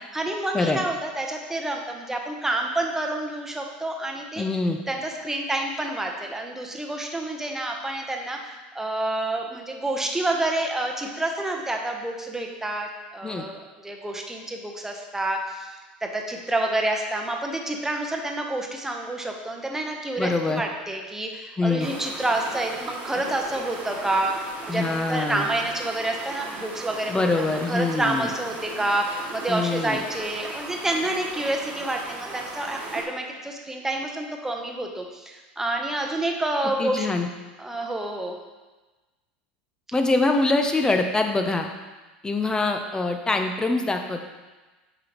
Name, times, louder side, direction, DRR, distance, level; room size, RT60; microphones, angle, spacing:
voice 1, 0.1-4.4 4.9-15.7 16.0-37.1 37.6-38.4, right 2 dB, 10° right, 1 dB, 1.0 m, -28 dB
voice 2, 4.4-4.8 13.2-13.4 20.2-20.6 21.6-21.9 24.7-25.5 27.1-28.3 29.5-30.0 36.8-37.3 39.9-41.7 42.2-44.2, left 3 dB, 15° left, 4 dB, 0.7 m, -24 dB
sound 1, 21.8-33.0, right 3 dB, 35° right, 1.4 m, -37 dB
7.7 x 4.9 x 3.0 m, 1.2 s
hypercardioid pair, 80°, 5 cm